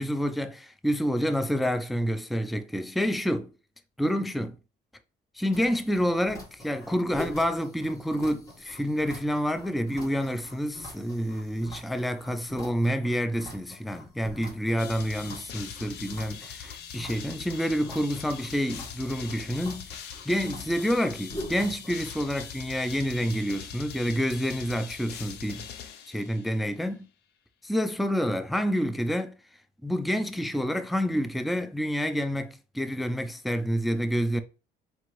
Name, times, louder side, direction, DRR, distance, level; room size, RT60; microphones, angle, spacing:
voice 1, 0.0-3.5 4.0-4.6 5.4-25.7 26.1-27.1 27.6-29.3 29.8-34.4, equal, ahead, 0.4 m, -28 dB
sound 1, 5.5-22.4, left 1 dB, 20° left, 1.4 m, -45 dB
sound 2, 14.8-26.7, left 8 dB, 80° left, 0.6 m, -42 dB
4.5 x 2.9 x 3.0 m
cardioid pair, 110°, 17 cm